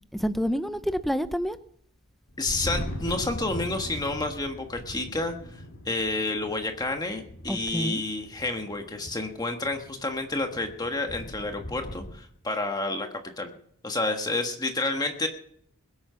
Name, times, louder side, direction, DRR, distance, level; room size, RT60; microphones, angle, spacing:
voice 1, 0.1-1.6 7.5-8.0, equal, ahead, 12 dB, 0.5 m, -28 dB
Thunder, 2.3-12.1, left 1 dB, 70° left, 2.6 m, -40 dB
voice 2, 2.4-13.1 13.4-13.5 13.8-15.3, left 2 dB, 20° left, 5 dB, 1.4 m, -30 dB
21.5 x 8.7 x 5.7 m, 0.65 s
head